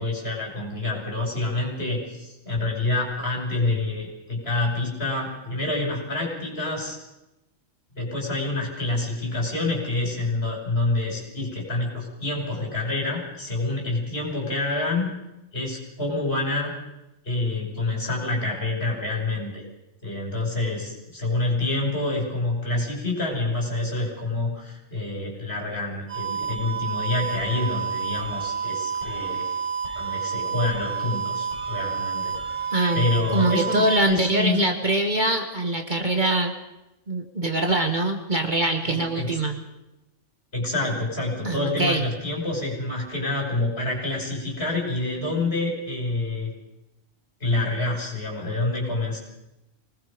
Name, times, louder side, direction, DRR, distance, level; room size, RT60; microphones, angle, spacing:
voice 1, 0.0-7.0 7.9-15.1 15.5-16.7 17.2-19.6 20.0-29.5 29.9-32.3 32.9-34.6 38.8-39.4 40.5-46.5 47.4-49.2, left 2 dB, 50° left, -1 dB, 6.2 m, -27 dB
sound 1, 26.1-34.0, right 6 dB, 60° right, 7.2 m, -29 dB
voice 2, 32.7-33.1 33.3-36.5 37.1-39.6 41.4-42.0, right 2 dB, 40° right, 3 dB, 1.8 m, -23 dB
25.0 x 19.5 x 5.3 m, 0.93 s
omnidirectional pair, 1.3 m